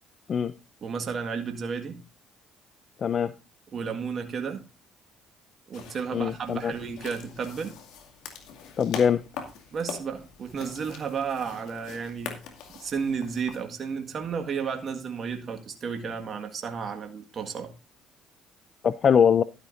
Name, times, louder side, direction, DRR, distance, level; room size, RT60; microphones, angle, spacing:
voice 1, 0.8-2.0 3.7-4.6 5.7-7.8 9.7-12.4 12.7-17.7, right 6 dB, 45° right, 1.7 m, -32 dB
voice 2, 3.0-3.3 6.1-6.7 8.8-9.2 18.8-19.4, left 7 dB, 50° left, 0.6 m, -22 dB
sound 1, 5.7-13.6, left 7 dB, 70° left, 2.2 m, -43 dB
12.0 x 11.5 x 2.6 m
hypercardioid pair, 60°, 0 cm